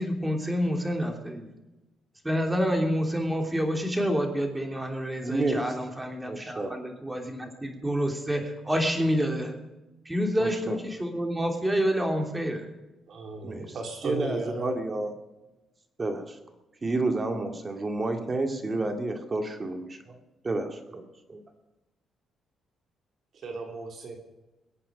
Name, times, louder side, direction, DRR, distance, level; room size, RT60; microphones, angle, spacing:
voice 1, 0.0-1.5 2.2-9.5 10.0-12.6, equal, 10° right, 3 dB, 3.1 m, -28 dB
voice 2, 5.2-5.8 6.3-6.7 10.4-10.8 13.4-13.8 14.0-15.1 16.0-16.4 16.8-21.4, right 2 dB, 30° right, 5 dB, 2.1 m, -30 dB
voice 3, 13.1-14.7 23.3-24.2, right 3 dB, 60° right, 2 dB, 3.0 m, -35 dB
21.5 x 8.6 x 5.2 m, 1.0 s
cardioid pair, 90°, 0 cm